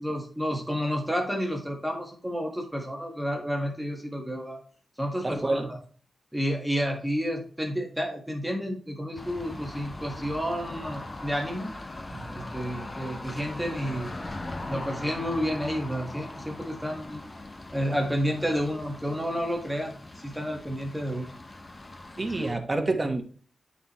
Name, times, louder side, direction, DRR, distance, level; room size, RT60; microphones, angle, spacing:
voice 1, 0.0-4.6 5.0-5.8 6.3-11.7 12.3-14.1 14.7-17.2 17.7-21.3 22.3-22.6, equal, 5° right, 2 dB, 1.7 m, -30 dB
voice 2, 5.2-5.7 12.1-12.3 22.2-23.2, right 2 dB, 30° right, 5 dB, 1.3 m, -28 dB
sound 1, 9.1-22.5, left 2 dB, 30° left, 0.9 m, -40 dB
9.1 x 4.3 x 3.1 m, 0.42 s
cardioid pair, 70°, 0 cm